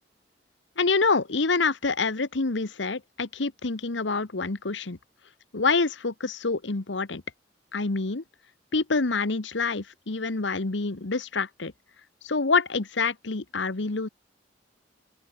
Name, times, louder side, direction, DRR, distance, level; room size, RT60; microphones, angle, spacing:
voice 1, 0.8-5.0 5.5-7.2 7.7-8.2 8.7-11.7 12.2-14.1, left 4 dB, 85° left, 1.2 m, -26 dB
open air
head